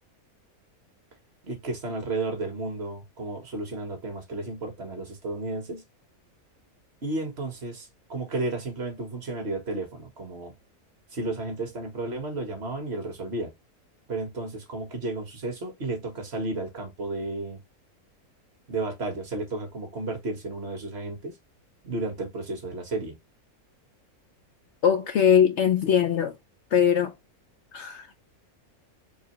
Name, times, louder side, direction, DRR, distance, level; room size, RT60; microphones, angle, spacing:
voice 1, 1.4-5.8 7.0-10.5 11.1-13.5 14.1-17.6 18.7-21.4 21.8-23.2, right 2 dB, 45° right, 1.6 m, -33 dB
voice 2, 24.8-26.3 26.7-27.1 27.7-28.2, left 8 dB, 65° left, 0.7 m, -21 dB
4.2 x 3.4 x 3.1 m
omnidirectional pair, 1.6 m